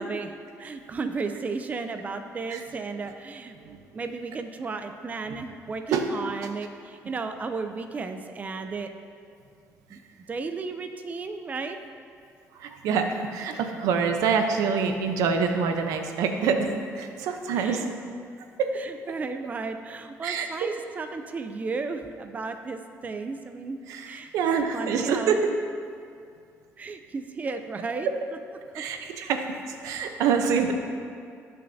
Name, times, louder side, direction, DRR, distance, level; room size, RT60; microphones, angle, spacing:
voice 1, 0.0-3.6 3.9-8.9 9.9-10.0 10.3-11.8 17.5-17.9 18.8-24.3 24.7-25.4 26.8-28.1 28.7-28.8, right 4 dB, 30° right, 7 dB, 0.5 m, -34 dB
voice 2, 5.9-6.3 9.9-10.0 12.5-17.8 18.6-18.8 20.2-20.7 23.9-25.6 28.7-30.7, right 5 dB, 90° right, 5 dB, 0.8 m, -26 dB
18.0 x 6.5 x 2.8 m, 2.3 s
cardioid pair, 120°, 6 cm